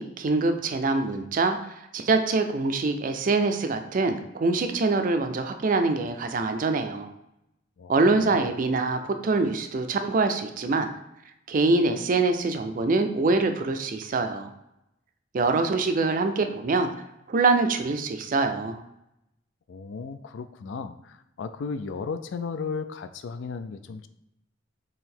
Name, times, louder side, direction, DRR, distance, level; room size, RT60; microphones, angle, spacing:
voice 1, 0.0-7.1 7.9-10.9 11.5-14.5 15.3-16.9 17.3-18.8, right 3 dB, 45° right, 7 dB, 0.4 m, -24 dB
voice 2, 7.8-8.5 19.7-24.1, left 5 dB, 70° left, 10 dB, 0.4 m, -35 dB
3.8 x 3.0 x 4.3 m, 0.85 s
head